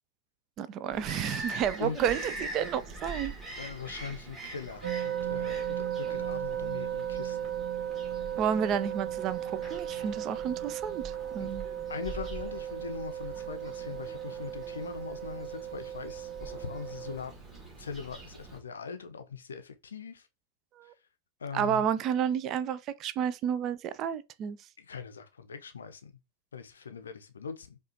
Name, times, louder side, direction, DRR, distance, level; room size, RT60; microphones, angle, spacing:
voice 1, 0.6-3.3 8.4-11.7 20.8-20.9 21.5-24.6, right 8 dB, 35° right, 0.3 m, -31 dB
Bird vocalization bird call bird song, 0.9-18.6, right 2 dB, 15° right, 1.6 m, -44 dB
voice 2, 1.4-2.0 3.6-7.5 11.4-11.5 11.9-17.3 17.8-20.3 21.4-21.9 24.8-26.1 26.5-27.8, left 6 dB, 70° left, 0.5 m, -41 dB
sound 1, 4.8-17.2, right 10 dB, 60° right, 1.5 m, -36 dB
4.8 x 2.4 x 2.7 m
figure-of-eight pair, 90°, 0 cm